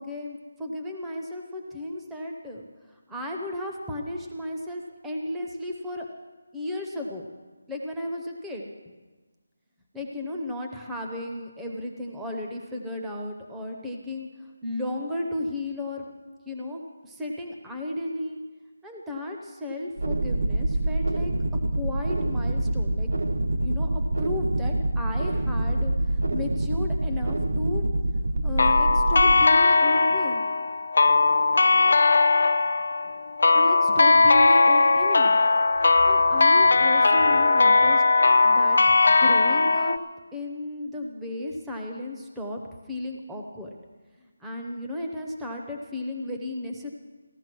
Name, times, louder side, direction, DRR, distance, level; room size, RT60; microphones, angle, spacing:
voice 1, 0.0-6.1 6.5-7.3 7.7-8.7 9.9-16.1 16.5-18.4 18.8-21.3 21.8-23.1 23.6-27.9 28.4-30.4 33.5-35.4 36.0-38.0 38.4-40.0 40.3-42.6 42.9-43.8 44.2-46.9, left 1 dB, 5° right, 0 dB, 0.7 m, -34 dB
sound 1, 20.0-29.4, right 1 dB, 55° right, 1.0 m, -26 dB
sound 2, 28.6-40.0, left 3 dB, 50° left, 0.5 m, -19 dB
15.5 x 11.5 x 6.1 m, 1.3 s
figure-of-eight pair, 180°, 0 cm